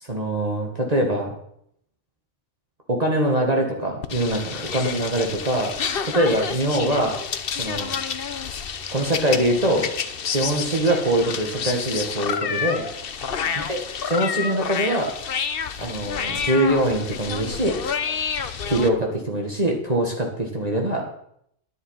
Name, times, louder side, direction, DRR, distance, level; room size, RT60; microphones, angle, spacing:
voice 1, 0.0-1.3 2.9-5.7 6.1-7.1 7.5-7.9 8.9-9.9 10.3-12.9 13.6-15.1 15.8-17.8 18.6-21.0, right 1 dB, 35° right, 0 dB, 1.9 m, -23 dB
sound 1, 4.0-18.9, left 6 dB, 55° left, 1.0 m, -29 dB
11.0 x 10.5 x 5.7 m, 0.70 s
omnidirectional pair, 1.2 m